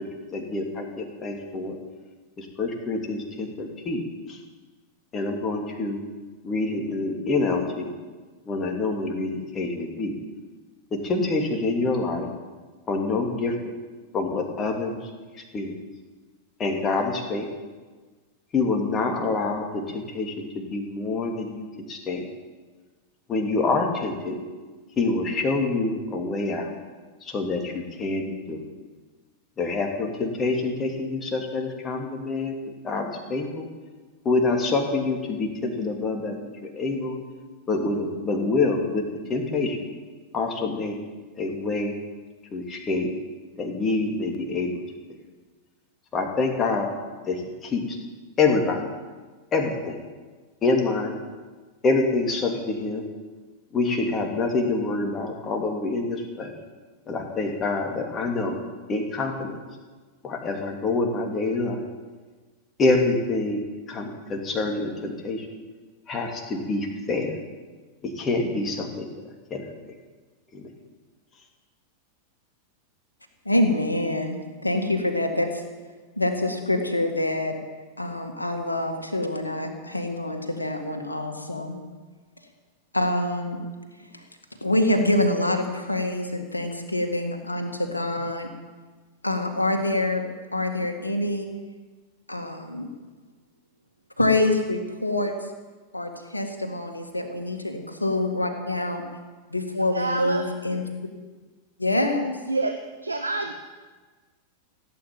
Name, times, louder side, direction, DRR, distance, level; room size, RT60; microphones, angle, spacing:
voice 1, 0.3-1.8 2.4-4.4 5.1-6.0 6.4-7.9 8.5-10.1 10.9-12.3 12.9-13.8 14.1-15.1 15.5-15.8 16.6-17.5 18.5-22.3 23.3-24.4 25.0-26.7 27.2-28.6 29.6-32.5 32.8-33.7 34.2-37.2 37.7-39.0 39.3-39.9 40.3-40.9 41.4-41.9 42.5-43.1 43.6-44.8 46.1-46.9 47.2-48.0 48.4-48.9 49.5-50.0 50.6-51.2 51.8-53.1 53.7-56.5 57.1-58.6 58.9-59.6 60.2-61.9 62.8-65.5 66.1-67.4 68.0-69.1 69.5-69.7 70.5-70.7, left 3 dB, 25° left, 2 dB, 2.9 m, -26 dB
voice 2, 73.5-74.4 74.6-75.6 76.2-77.5 78.0-81.7 82.9-83.6 84.0-84.2 84.6-88.5 89.2-90.2 90.5-91.5 92.3-92.9 94.2-95.3 95.9-99.0 99.5-100.8 101.8-102.3, left 1 dB, 85° left, 5 dB, 2.0 m, -26 dB
voice 3, 99.9-100.5 102.5-102.8 103.0-103.5, right 3 dB, 80° right, 5 dB, 1.0 m, -26 dB
17.0 x 8.7 x 9.1 m, 1.3 s
figure-of-eight pair, 90°, 0 cm